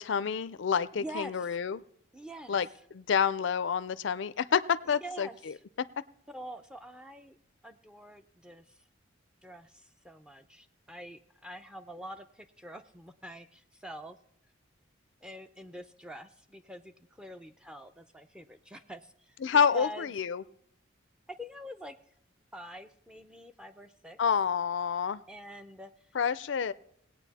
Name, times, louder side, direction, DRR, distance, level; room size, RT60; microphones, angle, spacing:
voice 1, 0.0-1.8 2.5-5.5 19.4-20.4 24.2-25.2 26.1-26.7, left 7 dB, 65° left, 16 dB, 0.4 m, -28 dB
voice 2, 0.9-1.6 2.1-2.6 4.9-5.6 6.3-7.4 7.6-8.8 9.4-14.2 15.2-20.1 21.3-21.9 22.5-24.2 25.3-26.1, equal, 5° right, 7 dB, 0.5 m, -45 dB
18.5 x 8.7 x 4.1 m, 0.70 s
head